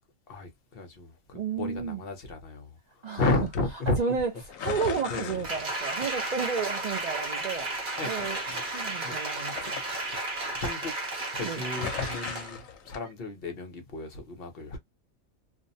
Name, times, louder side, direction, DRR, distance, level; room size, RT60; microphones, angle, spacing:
voice 1, 0.3-1.1 1.6-2.7 3.2-4.0 5.1-5.5 8.0-8.1 8.5-8.6 9.0-9.2 10.5-10.9 11.3-14.8, left 2 dB, 55° left, 0.8 m, -32 dB
voice 2, 1.3-2.0 3.0-3.3 3.9-7.7 8.0-8.4 8.7-9.8 11.4-11.6, right 5 dB, 70° right, 0.4 m, -32 dB
sound 1, 3.3-3.6 4.5-6.8 7.1-7.8 8.2-10.5 10.8-11.2 11.6-13.0, left 7 dB, 75° left, 1.0 m, -39 dB
Applause, 5.4-12.6 13.0-13.1, right 2 dB, 45° right, 0.9 m, -33 dB
2.6 x 2.0 x 2.6 m
omnidirectional pair, 1.4 m